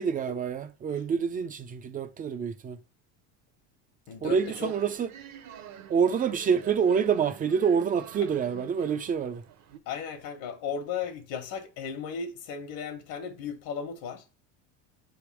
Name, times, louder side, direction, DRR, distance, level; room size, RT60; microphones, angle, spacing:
voice 1, 0.0-2.8 4.2-5.1 5.9-9.4, right 6 dB, 25° right, 0.5 m, -27 dB
voice 2, 4.1-4.7 9.9-14.2, left 6 dB, 65° left, 1.3 m, -36 dB
sound 1, 4.3-9.8, right 9 dB, 45° right, 0.9 m, -47 dB
6.6 x 3.6 x 4.7 m
cardioid pair, 135°, 37 cm